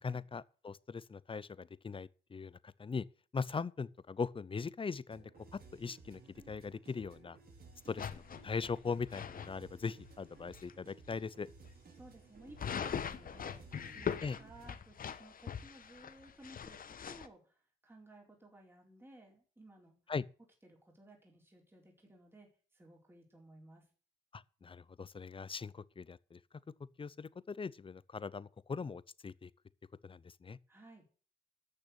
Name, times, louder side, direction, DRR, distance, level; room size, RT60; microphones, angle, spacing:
voice 1, 0.0-3.1 3.3-6.2 6.5-7.4 7.9-11.5 14.2-14.4 20.1-20.2 24.3-26.4 27.0-29.5 30.0-30.6, left 5 dB, 25° left, 0.7 m, -40 dB
sound 1, 5.1-14.7, right 4 dB, 50° right, 5.4 m, -58 dB
sound 2, 8.0-9.5 10.0-10.1 10.5-10.7 11.1-11.2 12.6-17.3, left 7 dB, 45° left, 1.2 m, -41 dB
voice 2, 11.9-20.0 20.6-23.9 30.7-31.1, right 1 dB, 10° right, 4.5 m, -58 dB
12.0 x 6.8 x 8.2 m
cardioid pair, 90°, 20 cm